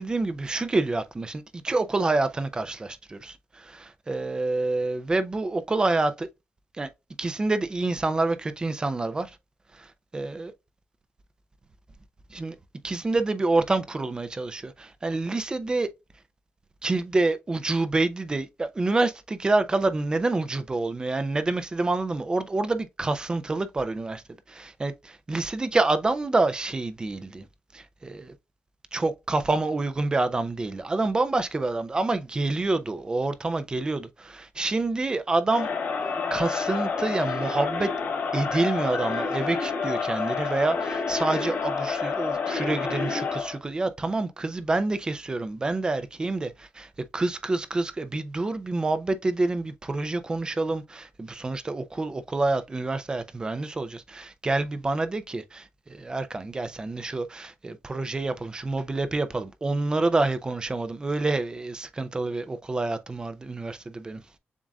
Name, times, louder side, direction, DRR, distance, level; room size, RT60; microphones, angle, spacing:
voice 1, 0.0-6.3 6.7-6.9 7.2-9.3 9.7-10.5 12.3-12.6 12.8-15.9 16.8-24.2 24.5-24.9 25.3-27.5 27.7-28.3 28.9-35.7 36.3-37.9 38.3-64.2, right 2 dB, 20° right, 0.4 m, -27 dB
Crowd, 35.5-43.6, left 5 dB, 80° left, 1.4 m, -29 dB
7.2 x 2.5 x 2.3 m
wide cardioid pair, 150°, 4 cm